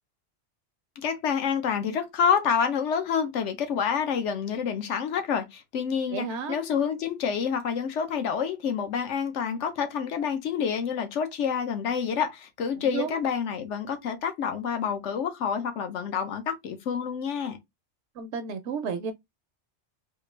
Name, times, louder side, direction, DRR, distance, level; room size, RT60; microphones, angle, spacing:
voice 1, 1.0-17.6, left 7 dB, 80° left, 1.1 m, -28 dB
voice 2, 6.1-6.6 12.8-13.2 18.2-19.1, right 6 dB, 75° right, 0.9 m, -32 dB
3.6 x 2.4 x 3.1 m
omnidirectional pair, 1.2 m